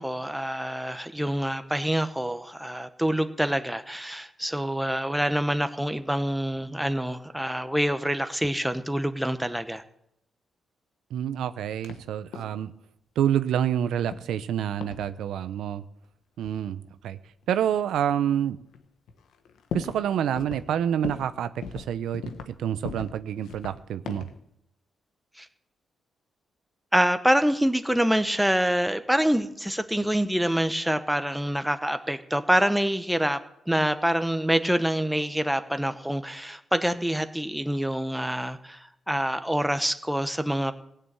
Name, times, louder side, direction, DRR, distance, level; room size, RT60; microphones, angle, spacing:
voice 1, 0.0-9.8 25.4-25.5 26.9-40.7, equal, 5° right, 10 dB, 1.0 m, -26 dB
voice 2, 11.1-12.7 13.2-15.8 16.4-17.2 17.5-18.6 19.7-24.3, right 9 dB, 85° right, 12 dB, 0.6 m, -28 dB
sound 1, 11.8-12.0 12.3-12.6 14.1-14.5 14.8-15.0 16.4-16.5 17.4-17.5 18.2-18.3 18.7-18.8 19.1-20.1 20.4-20.7 21.0-21.3 21.6-22.6 22.8-23.2 23.4-24.4, left 6 dB, 85° left, 1.2 m, -38 dB
16.0 x 6.7 x 8.9 m, 0.78 s
cardioid pair, 80°, 0 cm